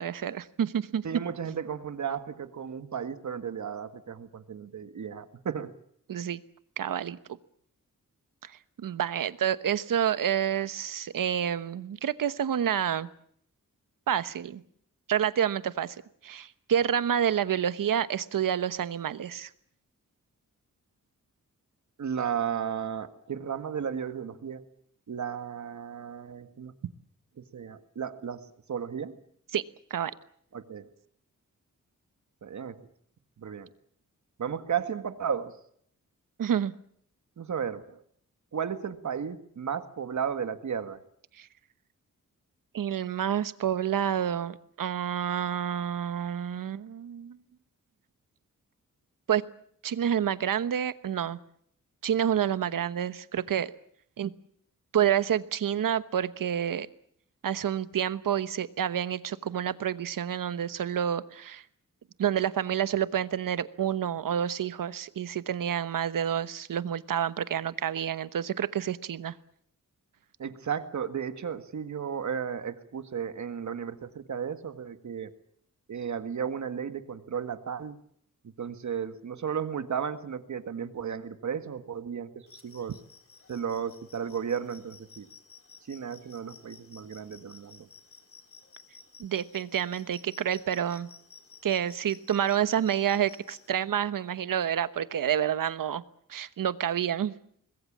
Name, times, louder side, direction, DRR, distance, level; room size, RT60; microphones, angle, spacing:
voice 1, 0.0-1.0 6.1-6.4 6.8-7.2 8.4-8.5 8.8-13.1 14.1-14.6 15.1-16.0 16.2-19.5 29.5-29.6 29.9-30.1 36.4-36.7 41.4-41.5 42.7-47.4 49.3-49.4 49.8-51.4 52.0-53.7 54.2-54.3 54.9-56.9 57.4-61.6 62.2-69.3 89.2-91.1 91.6-96.0 96.3-97.3, right 9 dB, 85° right, 14 dB, 1.1 m, -28 dB
voice 2, 1.0-5.7 22.0-24.6 25.1-26.7 27.5-29.2 30.5-30.9 32.4-32.9 33.4-33.7 34.4-35.5 37.4-38.0 38.5-41.0 70.4-75.3 75.9-78.0 78.6-83.0 83.5-85.3 85.9-87.9, right 7 dB, 60° right, 10 dB, 1.8 m, -34 dB
sound 1, 82.5-93.7, left 5 dB, 45° left, 2.6 m, -54 dB
25.5 x 21.0 x 7.4 m, 0.65 s
wide cardioid pair, 160°, 32 cm